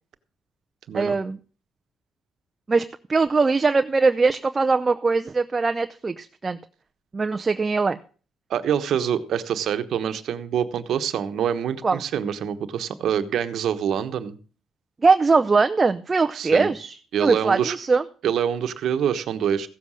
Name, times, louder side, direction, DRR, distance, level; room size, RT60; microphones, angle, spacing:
voice 1, 0.9-1.4 2.7-6.6 7.1-8.0 11.8-12.0 15.0-18.0, right 4 dB, 30° right, 9 dB, 0.6 m, -21 dB
voice 2, 8.5-14.4 16.3-16.7 17.1-17.8 18.2-19.7, right 9 dB, 70° right, 9 dB, 1.2 m, -25 dB
15.5 x 7.4 x 6.4 m, 0.40 s
cardioid pair, 90°, 0 cm